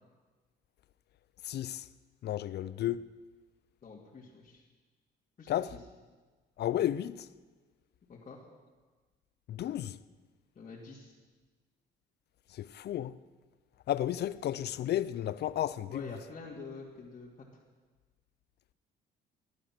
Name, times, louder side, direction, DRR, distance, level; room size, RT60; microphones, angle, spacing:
voice 1, 1.4-1.9 2.2-3.1 5.5-5.8 6.6-7.3 9.5-10.0 12.5-13.2 13.9-16.2, left 12 dB, 60° left, 0.5 m, -33 dB
voice 2, 3.8-4.6 5.4-5.5 8.1-8.4 10.6-11.1 15.9-17.3, left 4 dB, 40° left, 2.4 m, -46 dB
16.0 x 10.5 x 6.1 m
cardioid pair, 95°, 20 cm